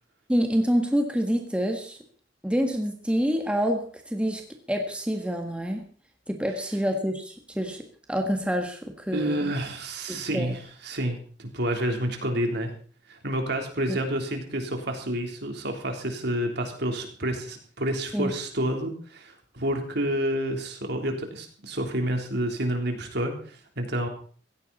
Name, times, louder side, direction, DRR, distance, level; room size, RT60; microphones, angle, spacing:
voice 1, 0.3-2.0 2.4-4.4 4.7-5.9 6.3-9.5 10.1-10.5 13.9-14.0 18.1-18.3, equal, 5° right, 3 dB, 1.6 m, -27 dB
voice 2, 9.1-12.7 13.1-24.1, right 1 dB, 60° right, 3 dB, 3.5 m, -29 dB
16.5 x 15.5 x 4.2 m, 0.42 s
head